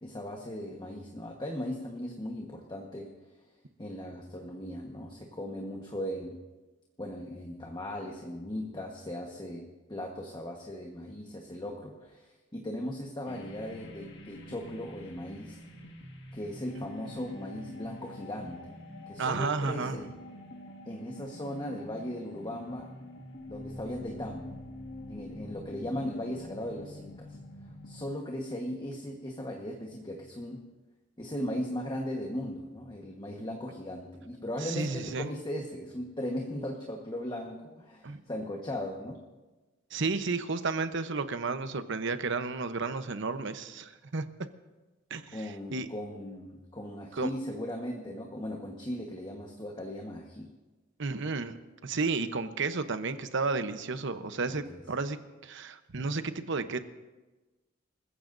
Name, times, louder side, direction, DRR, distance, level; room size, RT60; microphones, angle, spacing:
voice 1, 0.0-3.1 3.8-6.4 7.0-15.6 16.3-18.7 19.1-20.1 20.8-22.9 23.5-24.5 25.1-27.4 27.8-30.6 31.2-39.2 45.3-50.5 54.5-54.8, left 1 dB, 25° left, 0 dB, 1.3 m, -38 dB
sound 1, 13.3-28.1, left 1 dB, 60° left, 1.8 m, -46 dB
voice 2, 19.2-20.0 34.6-35.3 38.0-38.2 39.9-44.3 45.1-45.9 47.1-47.3 51.0-51.5 51.8-55.2 55.4-56.8, right 4 dB, 65° right, 10 dB, 0.9 m, -32 dB
28.0 x 15.0 x 2.7 m, 1.2 s
head